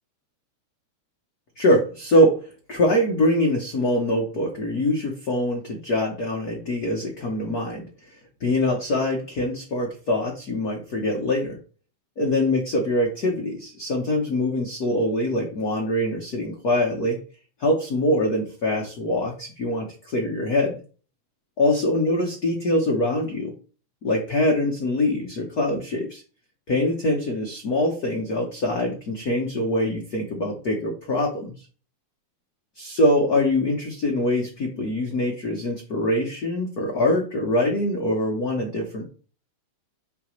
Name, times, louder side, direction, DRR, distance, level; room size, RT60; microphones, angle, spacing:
voice 1, 1.6-7.9 8.4-11.6 12.2-17.2 17.6-20.8 21.6-23.5 24.0-26.2 26.7-31.7 32.8-39.1, left 1 dB, 50° left, 0 dB, 1.2 m, -23 dB
7.8 x 5.0 x 3.2 m, 0.37 s
omnidirectional pair, 3.3 m